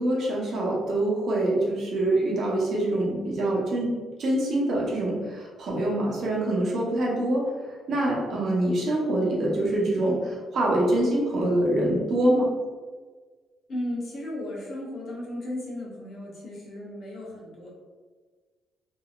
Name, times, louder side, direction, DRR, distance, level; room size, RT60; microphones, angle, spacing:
voice 1, 0.0-3.9 4.2-7.4 7.9-12.5, right 1 dB, 60° right, -4 dB, 0.9 m, -25 dB
voice 2, 13.7-17.7, left 1 dB, 55° left, -4 dB, 1.0 m, -35 dB
3.0 x 2.7 x 2.4 m, 1.4 s
cardioid pair, 90°, 0 cm